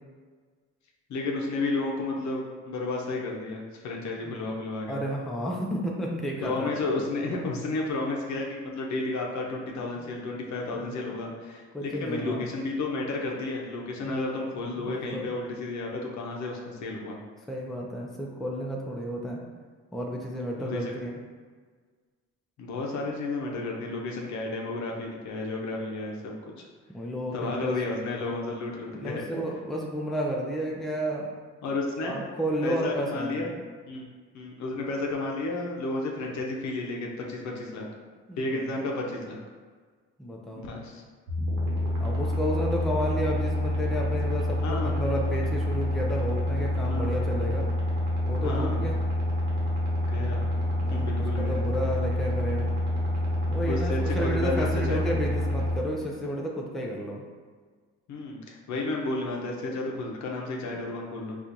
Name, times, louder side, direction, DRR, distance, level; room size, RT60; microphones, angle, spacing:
voice 1, 1.1-5.0 6.4-17.2 20.6-20.8 22.6-26.5 27.3-29.3 31.6-32.1 32.6-33.5 33.9-34.1 34.3-37.9 38.4-39.4 40.6-41.0 44.6-45.0 46.9-47.2 48.4-48.8 50.1-50.5 50.9-51.6 53.6-55.1 58.1-61.4, left 2 dB, 70° left, -1 dB, 0.6 m, -32 dB
voice 2, 4.9-6.7 10.0-10.2 10.7-11.0 11.7-12.5 14.0-14.2 14.8-15.4 17.5-19.4 19.9-21.1 26.9-28.3 28.9-31.3 32.0-33.5 38.3-38.8 40.2-40.7 42.0-47.7 48.3-49.0 50.8-52.7 53.5-57.2, equal, ahead, -1 dB, 0.4 m, -32 dB
sound 1, 41.3-55.8, left 1 dB, 75° right, 1.0 m, -27 dB
4.2 x 2.4 x 2.6 m, 1.5 s
cardioid pair, 90°, 30 cm